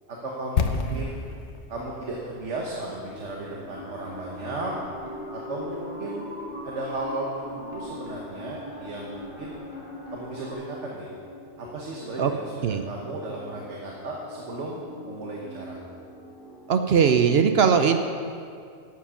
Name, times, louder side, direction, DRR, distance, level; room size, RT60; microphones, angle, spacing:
voice 1, 0.1-1.2 1.7-4.7 5.3-9.6 10.1-11.1 11.6-15.8, right 2 dB, 85° right, -2 dB, 1.5 m, -35 dB
sound 1, 0.6-4.5 4.8-4.9, left 5 dB, 75° left, 1.1 m, -31 dB
sound 2, 3.1-17.4, left 1 dB, 50° left, 1.5 m, -45 dB
sound 3, 3.7-10.5, equal, 25° right, 3.2 m, -40 dB
voice 2, 16.7-18.0, right 7 dB, 65° right, 7 dB, 0.9 m, -20 dB
11.5 x 7.6 x 7.0 m, 2.3 s
omnidirectional pair, 1.2 m